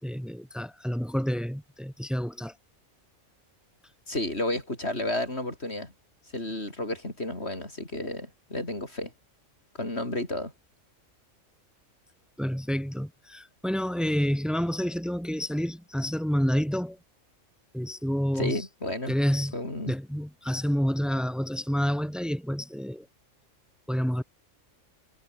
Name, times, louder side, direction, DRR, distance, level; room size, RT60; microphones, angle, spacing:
voice 1, 0.0-2.5 12.4-17.0 17.7-18.6 19.1-19.5 19.9-23.1 23.9-24.2, equal, ahead, 3.7 m, -28 dB
voice 2, 4.1-5.9 6.3-9.1 9.8-10.5 18.3-19.2 19.5-19.9, left 1 dB, 55° left, 6.0 m, -32 dB
omnidirectional pair, 1.3 m